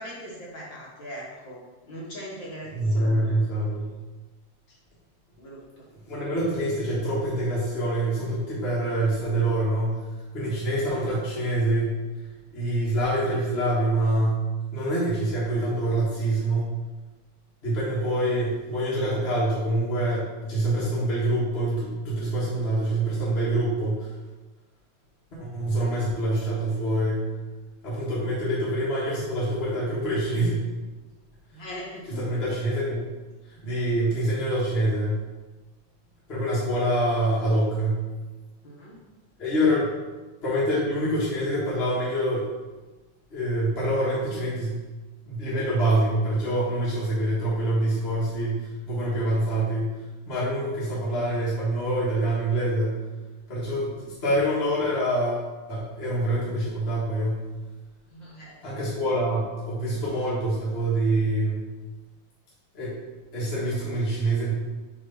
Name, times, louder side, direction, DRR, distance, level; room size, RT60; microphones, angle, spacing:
voice 1, 0.0-3.4 5.4-5.8 31.5-32.2 38.6-39.0 58.1-58.5, equal, 55° left, -5 dB, 1.4 m, -40 dB
voice 2, 2.7-3.9 6.1-10.0 10.3-12.0 12.5-14.5 14.7-16.7 17.6-24.1 25.3-27.3 27.8-30.7 32.1-33.0 33.5-35.2 36.3-38.0 39.4-39.9 40.4-42.5 43.3-44.8 45.2-53.0 53.5-57.4 58.6-61.7 62.7-63.0 63.3-64.5, right 1 dB, 30° left, -8 dB, 1.2 m, -25 dB
5.4 x 3.9 x 5.7 m, 1.2 s
omnidirectional pair, 3.3 m